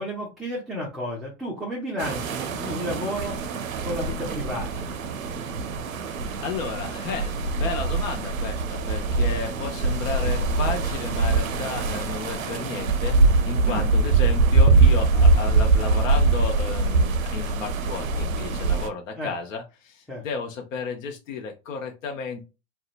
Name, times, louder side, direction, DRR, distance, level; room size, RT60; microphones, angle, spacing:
voice 1, 0.0-3.4 3.8-4.9 13.6-13.9 19.2-19.3 20.1-20.2, equal, ahead, -4 dB, 0.4 m, -32 dB
sound 1, 2.0-18.9, right 3 dB, 85° right, 0.6 m, -23 dB
voice 2, 5.9-22.5, left 5 dB, 70° left, 3 dB, 0.7 m, -33 dB
2.7 x 2.1 x 2.4 m, 0.28 s
hypercardioid pair, 105°, 40 cm